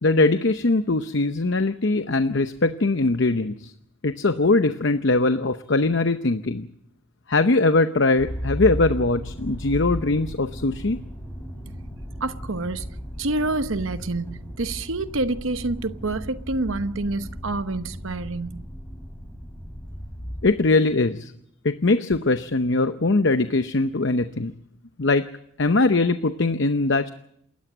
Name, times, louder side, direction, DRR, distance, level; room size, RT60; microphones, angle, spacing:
voice 1, 0.0-3.7 4.0-6.7 7.3-11.0 20.4-21.3 21.6-24.5 25.0-25.3 25.6-27.1, left 3 dB, 60° left, 0.8 m, -21 dB
Motor vehicle (road), 8.2-20.5, equal, 10° left, 4.2 m, -35 dB
voice 2, 12.2-12.9 13.2-18.6, right 2 dB, 70° right, 1.0 m, -27 dB
28.0 x 13.5 x 7.9 m
head